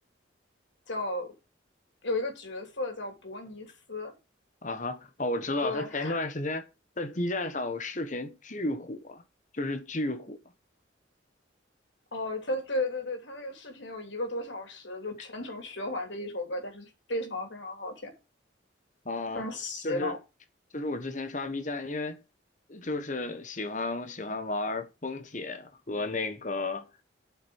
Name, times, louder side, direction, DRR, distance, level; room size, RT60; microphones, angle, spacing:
voice 1, 0.9-1.3 2.0-4.1 5.6-6.2 12.1-18.1 19.3-20.2, left 2 dB, 70° left, 3.0 m, -34 dB
voice 2, 4.6-6.6 7.0-9.2 9.5-10.4 19.0-19.4 19.8-20.1 20.7-22.2 22.7-26.8, left 2 dB, 40° left, 1.4 m, -33 dB
8.1 x 6.0 x 6.4 m
head